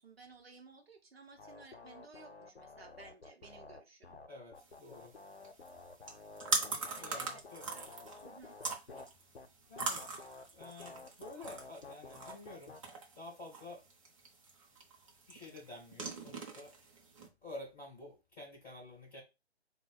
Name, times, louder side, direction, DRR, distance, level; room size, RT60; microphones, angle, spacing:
voice 1, 0.0-4.2 6.8-7.4 7.7-7.8 8.2-8.6, right 4 dB, 65° right, 0.8 m, -56 dB
sound 1, 1.4-9.1 9.4-9.5 9.8-12.8, left 3 dB, 75° left, 0.7 m, -52 dB
voice 2, 4.3-5.1 6.6-7.7 9.7-10.0 10.5-12.7 13.2-13.8 15.3-16.7 17.4-19.2, left 2 dB, 5° left, 0.5 m, -50 dB
sound 2, 4.6-17.3, right 3 dB, 30° right, 0.7 m, -42 dB
3.9 x 2.2 x 3.9 m
figure-of-eight pair, 135°, 33 cm